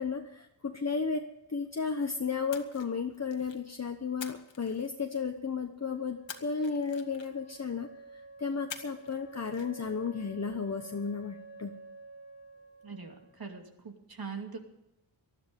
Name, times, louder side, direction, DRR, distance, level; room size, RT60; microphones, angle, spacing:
voice 1, 0.0-11.7, left 5 dB, 35° left, 4 dB, 1.0 m, -34 dB
Splash splatter, 2.5-3.7 4.2-5.4 6.3-7.6 8.7-9.2 9.4-9.7, left 6 dB, 70° left, 1.6 m, -46 dB
Wind instrument woodwind instrument, 5.8-13.6, right 3 dB, 35° right, 2.8 m, -51 dB
voice 2, 12.8-14.6, right 5 dB, 50° right, 3 dB, 2.7 m, -42 dB
19.5 x 13.0 x 5.3 m, 0.87 s
wide cardioid pair, 130°, 46 cm